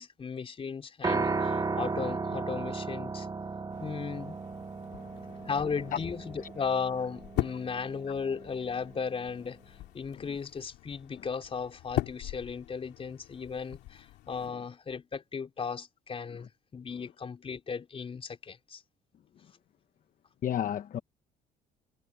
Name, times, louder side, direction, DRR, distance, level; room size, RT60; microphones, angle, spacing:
voice 1, 0.0-3.3 3.8-4.4 5.4-18.8, left 5 dB, 35° left, 4.3 m, -36 dB
Piano, 1.0-9.3, right 4 dB, 25° right, 1.8 m, -35 dB
sound 1, 3.7-14.5, left 16 dB, 90° left, 2.5 m, -41 dB
voice 2, 4.9-5.5 20.4-21.0, left 10 dB, 50° left, 1.1 m, -33 dB
cardioid pair, 110°, 17 cm